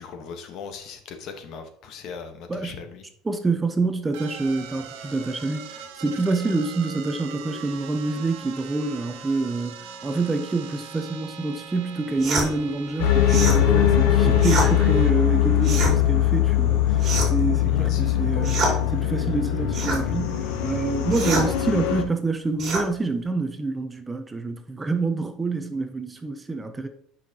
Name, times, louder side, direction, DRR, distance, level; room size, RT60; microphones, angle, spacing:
voice 1, 0.0-3.0 17.7-18.2, left 5 dB, 50° left, 1.1 m, -39 dB
voice 2, 2.5-2.8 3.2-26.9, right 3 dB, 15° right, 0.5 m, -27 dB
sound 1, 4.1-15.1, right 6 dB, 90° right, 1.3 m, -40 dB
sound 2, 12.2-12.5 13.3-13.6 14.4-14.7 15.6-16.0 17.0-17.5 18.4-18.8 19.7-20.0 21.1-21.5 22.6-22.9, right 3 dB, 35° right, 2.8 m, -25 dB
sound 3, 13.0-22.0, left 11 dB, 85° left, 1.0 m, -21 dB
8.9 x 5.5 x 2.8 m
cardioid pair, 150°, 0 cm